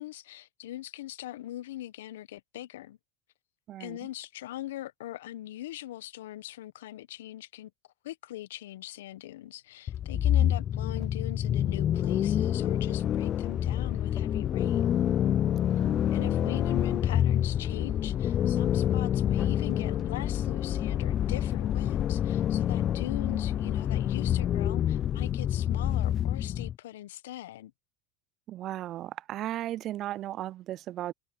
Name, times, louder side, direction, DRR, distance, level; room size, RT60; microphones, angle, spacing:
voice 1, 0.0-3.0 3.8-7.7 8.0-15.0 16.1-27.7, left 14 dB, 75° left, 1.0 m, -41 dB
voice 2, 3.7-4.0 10.1-10.6 15.7-16.6 28.5-31.1, right 13 dB, 45° right, 0.6 m, -37 dB
sound 1, 9.9-26.7, left 10 dB, 40° left, 0.5 m, -27 dB
hypercardioid pair, 85°, 0 cm